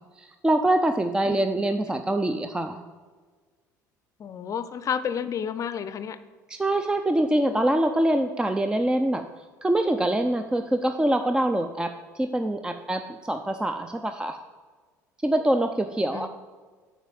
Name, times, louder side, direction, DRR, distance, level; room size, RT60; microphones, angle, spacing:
voice 1, 0.2-2.8 6.5-9.2 9.6-14.4 15.2-16.3, right 1 dB, 10° right, 8 dB, 0.5 m, -24 dB
voice 2, 4.2-6.2 16.1-16.3, left 8 dB, 35° left, 13 dB, 0.6 m, -30 dB
8.1 x 4.7 x 7.4 m, 1.5 s
figure-of-eight pair, 60°, 9 cm